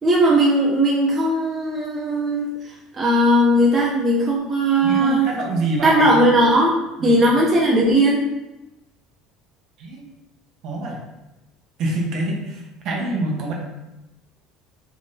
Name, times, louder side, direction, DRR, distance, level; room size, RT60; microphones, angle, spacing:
voice 1, 0.0-2.5 2.9-5.3 5.8-6.7 7.0-8.3, right 1 dB, 25° right, -4 dB, 0.5 m, -17 dB
voice 2, 4.8-6.3 7.0-7.2 9.8-10.1 10.6-11.0 11.8-13.5, right 2 dB, 55° right, -1 dB, 0.9 m, -26 dB
3.4 x 2.7 x 3.5 m, 0.98 s
cardioid pair, 135°, 0 cm